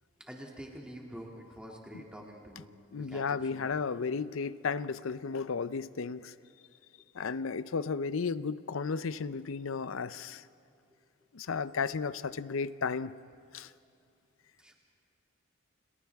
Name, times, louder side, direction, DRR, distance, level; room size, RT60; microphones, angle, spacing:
voice 1, 0.2-3.7 7.0-7.1 14.6-14.7, equal, 5° right, -1 dB, 2.4 m, -47 dB
voice 2, 2.9-6.3 7.1-10.4 11.3-13.1 13.5-13.7, left 5 dB, 75° left, 16 dB, 0.5 m, -34 dB
30.0 x 27.5 x 3.5 m, 2.5 s
head